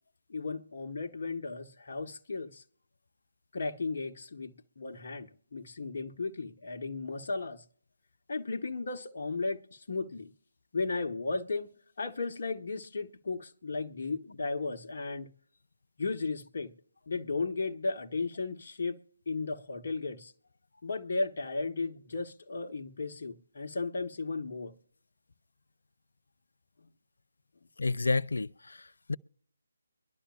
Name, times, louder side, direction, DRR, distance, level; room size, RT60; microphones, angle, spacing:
voice 1, 0.3-2.6 3.5-7.6 8.3-10.3 10.7-11.7 12.0-15.3 16.0-16.8 17.1-19.0 19.3-20.3 20.8-24.7, left 3 dB, 50° left, 1.1 m, -35 dB
voice 2, 27.8-29.1, left 3 dB, 70° left, 0.5 m, -30 dB
23.5 x 11.5 x 2.4 m
figure-of-eight pair, 150°, 0 cm